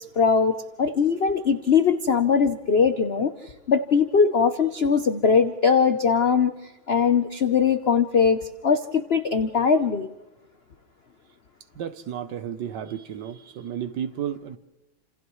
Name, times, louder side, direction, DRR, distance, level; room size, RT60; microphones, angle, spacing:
voice 1, 0.2-3.3 3.7-6.5 6.9-10.1, left 6 dB, 80° left, 0.5 m, -21 dB
voice 2, 11.7-14.6, right 9 dB, 65° right, 1.3 m, -32 dB
29.5 x 27.5 x 3.2 m
omnidirectional pair, 2.3 m